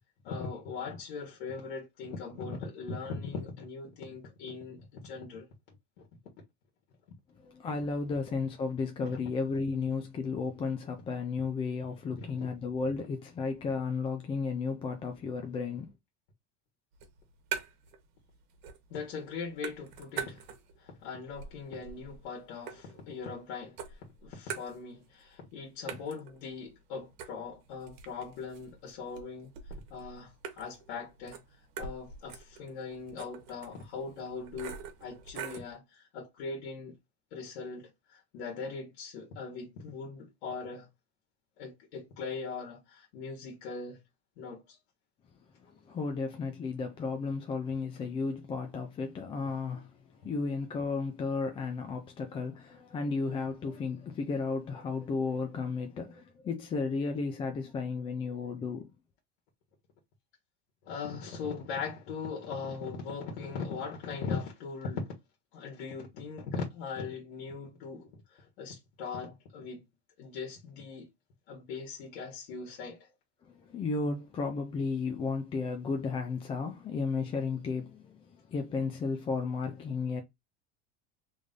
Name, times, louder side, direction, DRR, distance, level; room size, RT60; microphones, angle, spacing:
voice 1, 0.2-5.5 6.0-6.1 12.4-12.5 18.9-20.4 20.8-23.8 24.2-29.5 29.9-31.4 31.8-36.9 37.3-40.9 41.6-44.0 44.4-44.8 60.8-65.1 65.5-69.8 70.2-71.1 71.5-73.1, left 5 dB, 80° left, 1.5 m, -40 dB
voice 2, 7.4-15.9 45.7-49.9 50.2-58.9 73.5-80.2, left 4 dB, 15° left, 0.4 m, -33 dB
sound 1, 16.9-18.0 18.3-19.0 19.3-20.8 21.3-23.4 23.8-25.2 25.5-25.6 25.9-35.8, right 7 dB, 60° right, 1.2 m, -44 dB
3.4 x 2.6 x 3.6 m
cardioid pair, 160°, 33 cm